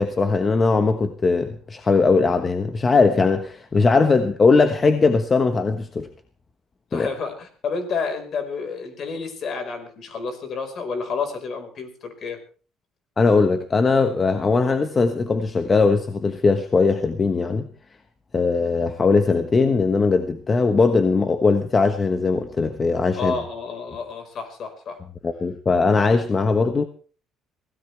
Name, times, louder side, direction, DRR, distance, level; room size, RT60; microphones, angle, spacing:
voice 1, 0.0-6.1 6.9-7.1 13.2-17.6 18.3-23.3 25.2-26.8, left 4 dB, 25° left, 1.2 m, -19 dB
voice 2, 6.9-12.4 23.2-25.0, left 5 dB, 45° left, 4.8 m, -30 dB
24.5 x 17.0 x 3.4 m
cardioid pair, 140°, 0 cm